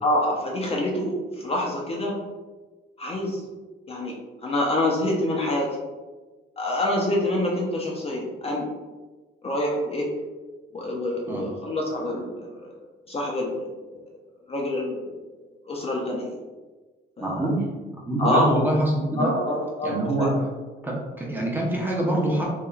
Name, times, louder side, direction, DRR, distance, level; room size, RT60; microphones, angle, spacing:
voice 1, 0.0-2.1 3.0-3.4 3.9-4.1 4.4-5.7 6.6-8.6 9.4-10.0 10.7-12.7 13.1-14.1 14.5-15.2 15.7-16.4 17.2-17.4 18.2-18.5 19.2-20.4, left 1 dB, 30° left, -2 dB, 0.5 m, -26 dB
voice 2, 17.2-17.7 18.0-19.3 19.8-20.3 20.8-22.5, right 1 dB, 10° right, -3 dB, 0.6 m, -25 dB
3.0 x 2.3 x 2.3 m, 1.3 s
cardioid pair, 90°, 20 cm